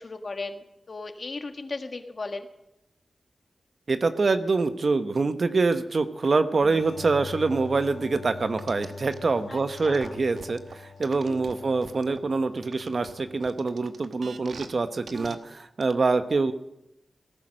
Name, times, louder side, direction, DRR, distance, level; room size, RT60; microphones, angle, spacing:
voice 1, 0.0-2.5 9.5-10.2 11.3-11.7, left 3 dB, 55° left, 7 dB, 1.5 m, -37 dB
voice 2, 3.9-10.6 11.0-16.5, right 3 dB, 60° right, 10 dB, 1.0 m, -25 dB
sound 1, 6.6-14.1, left 4 dB, 90° left, 1.1 m, -43 dB
sound 2, 8.6-9.2 9.8-12.2 12.6-14.7 15.1-15.4 15.8-15.9, right 4 dB, 80° right, 1.0 m, -43 dB
18.0 x 10.5 x 6.4 m, 0.90 s
cardioid pair, 50°, 0 cm